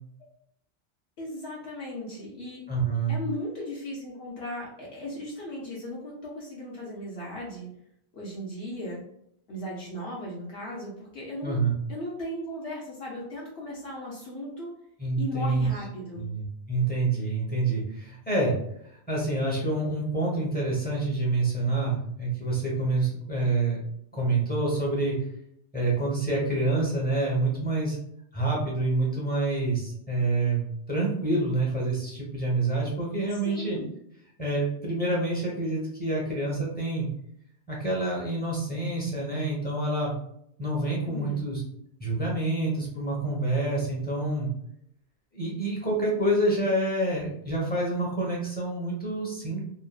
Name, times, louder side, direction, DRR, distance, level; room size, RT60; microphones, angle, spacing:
voice 1, 1.2-2.6 3.1-7.7 8.1-9.0 9.5-11.6 11.9-14.7 15.2-16.3 33.3-33.9 41.1-41.4, left 1 dB, 65° left, -4 dB, 0.9 m, -37 dB
voice 2, 2.7-3.2 11.4-11.7 15.0-15.7 16.1-18.5 18.9-23.8 24.1-25.2 25.7-28.0 28.3-33.8 34.4-37.1 37.7-40.1 40.6-41.6 42.0-44.5 45.3-49.7, right 2 dB, 10° left, -4 dB, 0.8 m, -27 dB
2.9 x 2.4 x 2.3 m, 0.72 s
omnidirectional pair, 1.2 m